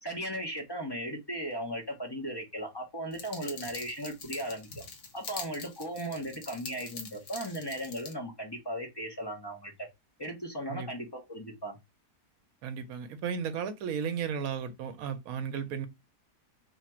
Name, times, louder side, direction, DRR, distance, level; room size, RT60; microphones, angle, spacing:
voice 1, 0.0-4.8 5.1-9.9 10.2-11.8, right 1 dB, 25° left, 0.6 m, -37 dB
sound 1, 3.1-8.1, left 5 dB, 65° left, 1.3 m, -44 dB
voice 2, 12.6-15.9, right 7 dB, 75° right, 1.0 m, -34 dB
2.9 x 2.4 x 4.2 m
omnidirectional pair, 1.6 m